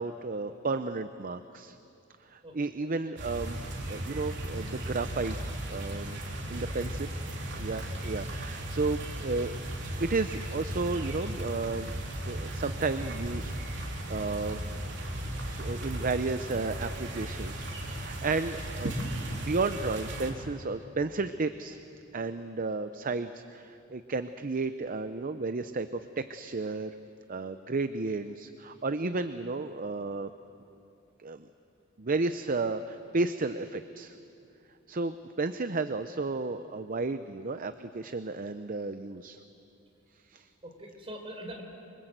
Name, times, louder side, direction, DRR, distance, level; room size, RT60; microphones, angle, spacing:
voice 1, 0.0-1.8 2.3-3.6 3.9-5.4 5.7-6.2 6.5-7.1 7.6-9.5 10.0-11.9 12.3-13.5 13.8-14.6 15.4-19.0 19.3-21.8 22.1-26.9 27.3-30.3 31.2-31.5 32.0-34.1 34.9-39.4 40.3-40.5, right 3 dB, 45° right, 10 dB, 0.7 m, -33 dB
sound 1, 3.2-20.3, right 1 dB, 60° right, 3.6 m, -36 dB
voice 2, 40.6-41.6, right 1 dB, 30° right, 1 dB, 4.4 m, -44 dB
27.5 x 24.5 x 8.0 m, 2.8 s
head